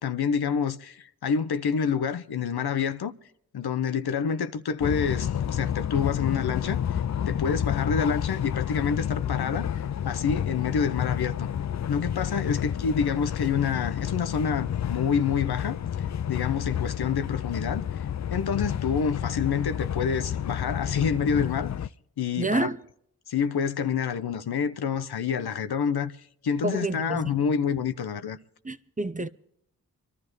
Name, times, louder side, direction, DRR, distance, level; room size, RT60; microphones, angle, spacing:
voice 1, 0.0-3.1 3.5-11.5 11.9-18.0 18.3-21.9 22.2-22.7 23.3-26.1 26.4-28.4, left 6 dB, 70° left, 0.9 m, -28 dB
sound 1, 4.8-21.9, left 9 dB, 45° left, 0.5 m, -30 dB
voice 2, 22.4-22.8 26.6-27.3 28.6-29.3, right 2 dB, 20° right, 0.8 m, -28 dB
25.5 x 12.5 x 3.2 m
cardioid pair, 45°, 39 cm